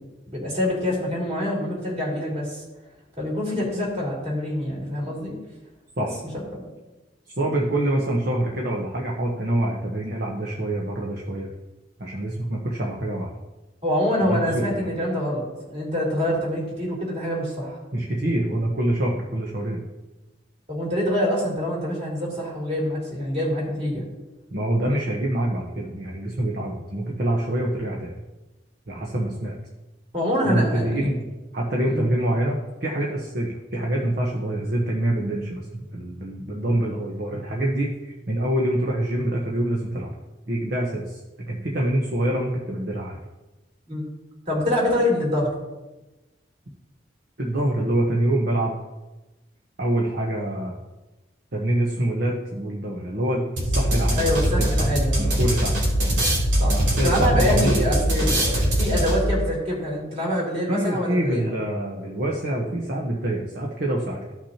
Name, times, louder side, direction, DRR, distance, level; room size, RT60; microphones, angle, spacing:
voice 1, 0.3-2.6 3.2-5.3 6.0-6.1 13.8-17.8 20.7-24.1 30.1-31.1 31.9-32.0 43.9-44.0 44.5-45.5 54.1-55.3 56.6-61.5, left 1 dB, 35° right, -4 dB, 3.2 m, -25 dB
voice 2, 7.4-11.5 12.0-13.3 14.2-14.9 17.9-19.8 24.5-28.1 28.9-29.5 30.4-31.2 31.5-40.1 40.5-41.2 41.5-43.2 47.4-48.8 49.8-50.8 51.5-54.2 54.8-55.8 56.7-57.7 60.7-64.3, right 1 dB, 55° right, -2 dB, 1.1 m, -25 dB
sound 1, 53.6-59.4, equal, 80° right, 3.0 m, -22 dB
15.0 x 6.0 x 2.9 m, 1.1 s
head